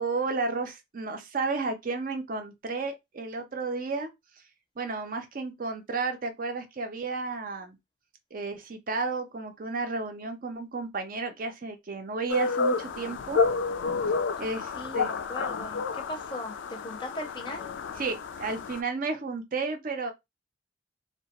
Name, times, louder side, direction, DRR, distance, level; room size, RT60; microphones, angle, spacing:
voice 1, 0.0-4.1 4.8-7.8 8.3-13.4 14.4-15.1 18.0-20.1, right 4 dB, 45° right, 0.5 m, -32 dB
sound 1, 12.3-18.8, left 4 dB, 75° left, 0.3 m, -30 dB
voice 2, 14.7-17.7, left 1 dB, 25° left, 0.5 m, -39 dB
2.7 x 2.1 x 2.9 m
head